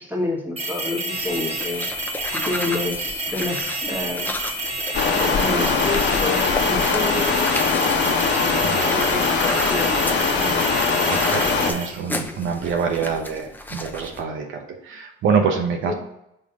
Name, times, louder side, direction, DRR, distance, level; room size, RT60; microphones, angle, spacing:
voice 1, 0.0-1.9 2.3-4.4 5.2-7.4 8.6-10.0 10.3-11.1 15.8-15.9, left 2 dB, 10° right, -1 dB, 1.7 m, -29 dB
sound 1, 0.6-12.0, right 2 dB, 30° right, 1.7 m, -29 dB
sound 2, 1.2-14.2, left 2 dB, 10° left, 0.6 m, -34 dB
sound 3, 4.9-11.7, left 5 dB, 65° left, 1.2 m, -21 dB
voice 2, 8.6-9.1 11.1-15.9, right 6 dB, 80° right, 2 dB, 0.9 m, -25 dB
5.5 x 3.3 x 5.3 m, 0.83 s
cardioid pair, 90°, 20 cm